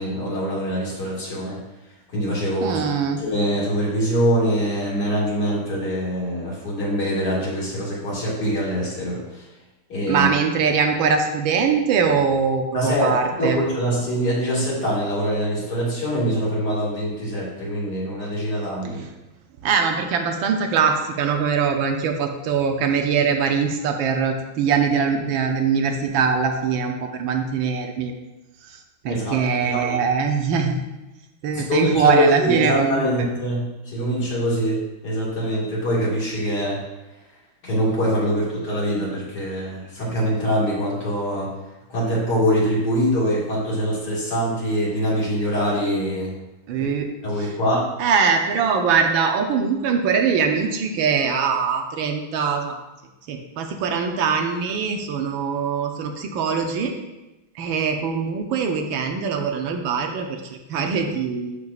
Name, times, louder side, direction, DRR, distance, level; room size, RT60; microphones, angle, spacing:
voice 1, 0.0-1.6 2.1-2.8 3.2-9.5 9.9-10.3 12.7-13.1 13.4-19.0 29.0-29.9 31.5-36.8 37.6-41.5 41.9-46.3 46.7-46.8 47.2-47.9, equal, 50° left, -6 dB, 2.6 m, -24 dB
voice 2, 2.6-3.2 10.1-13.6 19.6-28.1 28.7-28.8 29.0-30.9 31.4-33.0 46.7-47.1 48.0-52.8 53.3-56.9 57.6-61.6, right 6 dB, 80° right, 4 dB, 1.4 m, -22 dB
11.5 x 4.8 x 2.4 m, 1.0 s
omnidirectional pair, 2.2 m